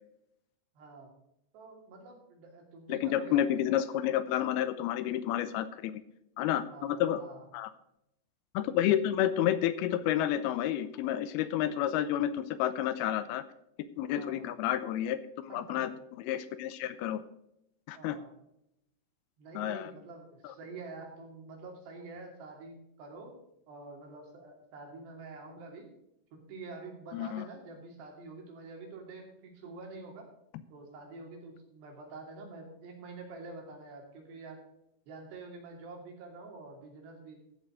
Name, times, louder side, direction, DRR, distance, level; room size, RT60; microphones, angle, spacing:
voice 1, 0.8-1.1 1.5-3.5 6.7-7.5 14.1-14.5 15.5-15.9 18.0-18.3 19.4-23.4 23.7-25.9 26.3-30.3 30.7-34.6 35.1-37.4, right 3 dB, 90° right, 1 dB, 4.9 m, -47 dB
voice 2, 2.9-6.0 6.4-7.2 7.5-7.7 8.5-13.4 14.0-15.9 16.2-17.2 17.9-18.2 19.6-19.9 20.4-20.5 27.1-27.5, left 11 dB, 80° left, 13 dB, 2.5 m, -30 dB
14.0 x 7.7 x 5.0 m, 0.80 s
omnidirectional pair, 4.7 m